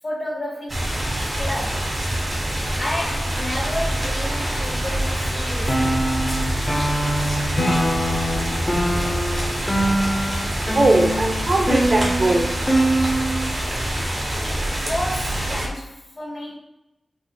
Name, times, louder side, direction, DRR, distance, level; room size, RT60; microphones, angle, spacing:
voice 1, 0.0-0.9 1.4-2.0 2.8-6.3 14.4-16.6, left 1 dB, 45° left, -4 dB, 1.5 m, -31 dB
sound 1, 0.7-15.7, right 1 dB, 40° right, 1.4 m, -25 dB
sound 2, 5.7-13.5, right 1 dB, 15° left, 0.6 m, -24 dB
Acoustic guitar / Strum, 7.6-11.1, left 2 dB, 65° left, 0.5 m, -30 dB
voice 2, 9.7-12.8, right 2 dB, 55° right, 1 dB, 0.5 m, -22 dB
4.2 x 2.5 x 2.3 m, 0.91 s
cardioid pair, 55°, 0 cm